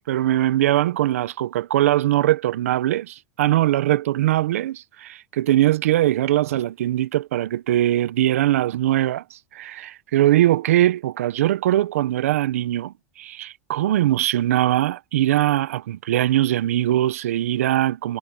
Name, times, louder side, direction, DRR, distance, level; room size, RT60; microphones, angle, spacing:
voice 1, 0.1-18.2, right 14 dB, 85° right, 0.9 m, -21 dB
hypercardioid pair, 110°, 8 cm